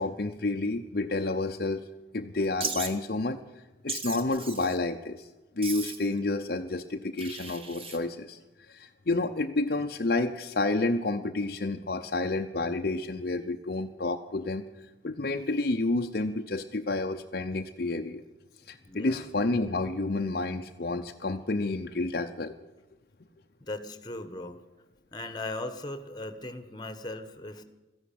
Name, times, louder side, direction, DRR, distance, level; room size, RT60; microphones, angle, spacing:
voice 1, 0.0-1.9 2.1-3.4 3.8-5.3 5.6-8.4 8.7-14.6 15.0-18.2 18.7-22.7, left 2 dB, 50° left, 5 dB, 0.7 m, -30 dB
Wild animals, 2.6-2.9 3.9-4.8 5.6-6.1 7.2-8.0, right 4 dB, 30° right, 1.5 m, -36 dB
voice 2, 18.8-19.3 23.6-24.6 25.1-27.6, left 2 dB, 20° left, 10 dB, 1.3 m, -38 dB
14.5 x 11.0 x 8.6 m, 1.1 s
head